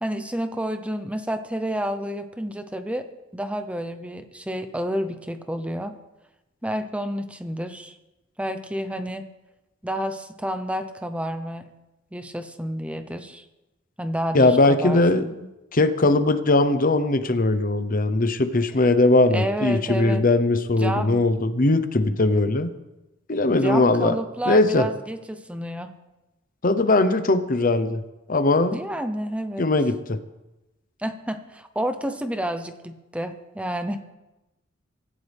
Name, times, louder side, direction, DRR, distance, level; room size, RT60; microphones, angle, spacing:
voice 1, 0.0-3.1 3.3-5.9 6.6-7.9 8.4-9.2 9.8-11.7 12.1-13.4 14.0-15.3 19.3-20.2 20.8-21.3 23.6-25.9 28.7-29.7 31.0-34.0, equal, 5° right, 8 dB, 0.9 m, -29 dB
voice 2, 14.3-15.5 15.7-22.7 23.3-24.1 24.5-24.9 26.6-28.0 28.3-28.8 29.6-30.2, left 2 dB, 45° left, 10 dB, 1.0 m, -20 dB
24.5 x 13.5 x 3.6 m, 0.99 s
head